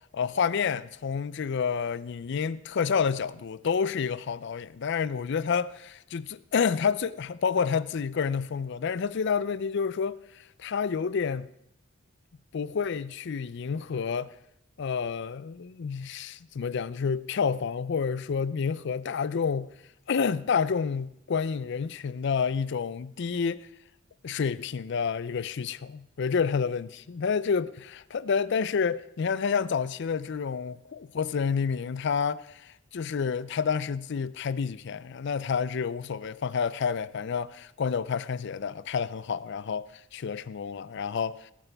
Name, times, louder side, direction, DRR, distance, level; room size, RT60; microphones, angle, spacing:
voice 1, 0.1-11.5 12.5-14.3 14.8-19.7 20.1-23.7 24.2-41.5, left 6 dB, 55° left, 0.4 m, -29 dB
17.5 x 9.7 x 3.4 m
head